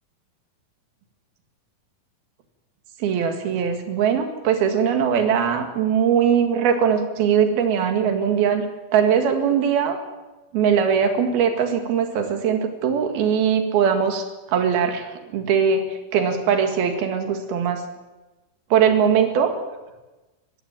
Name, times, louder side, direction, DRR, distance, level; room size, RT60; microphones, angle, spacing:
voice 1, 3.0-8.7 8.9-10.0 10.5-17.8 18.7-19.5, right 7 dB, 75° right, 6 dB, 3.8 m, -21 dB
21.5 x 15.5 x 9.1 m, 1.1 s
omnidirectional pair, 4.4 m